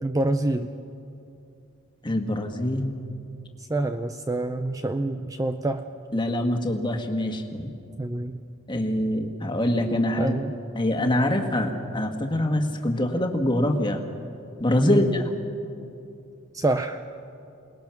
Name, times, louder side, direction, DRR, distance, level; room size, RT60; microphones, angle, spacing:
voice 1, 0.0-0.7 3.6-5.8 8.0-8.4 10.2-10.5 14.8-15.1 16.5-17.0, right 2 dB, 15° right, 8 dB, 0.5 m, -26 dB
voice 2, 2.0-2.9 6.1-7.7 8.7-10.4 10.7-14.0 14.6-15.2, left 1 dB, 20° left, 3 dB, 1.6 m, -24 dB
28.0 x 19.5 x 5.9 m, 2.7 s
head